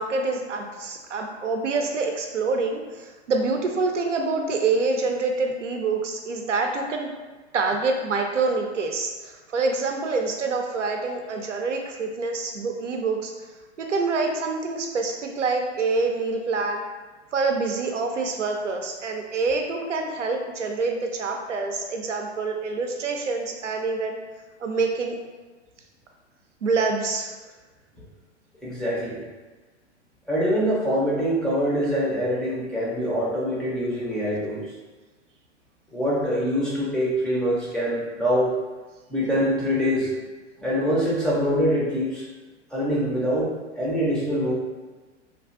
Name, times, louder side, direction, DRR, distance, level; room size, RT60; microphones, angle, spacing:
voice 1, 0.0-7.1 7.5-13.3 13.8-16.8 17.3-24.2 24.6-25.1 26.6-27.3, right 3 dB, 85° right, 3 dB, 0.5 m, -26 dB
voice 2, 28.6-29.2 30.3-34.6 35.9-38.5 39.1-40.1 40.6-42.2 42.7-44.5, equal, ahead, -8 dB, 0.4 m, -24 dB
3.2 x 2.5 x 2.4 m, 1.3 s
figure-of-eight pair, 100°, 35 cm